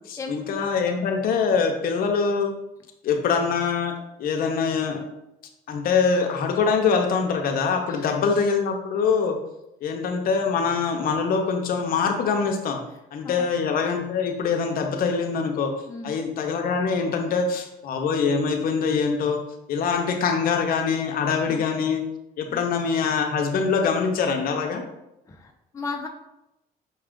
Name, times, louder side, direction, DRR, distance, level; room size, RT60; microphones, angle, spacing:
voice 1, 0.1-2.5 3.0-5.0 5.7-9.4 9.8-12.8 13.1-15.7 16.0-19.4 19.7-22.0 22.4-24.8, left 5 dB, 60° left, 4 dB, 0.6 m, -24 dB
voice 2, 7.9-8.2 13.2-13.5 15.9-16.1 21.5-21.6 22.5-22.6 25.3-26.1, left 3 dB, 20° left, 2 dB, 0.5 m, -35 dB
5.7 x 2.3 x 3.6 m, 0.88 s
cardioid pair, 110°, 17 cm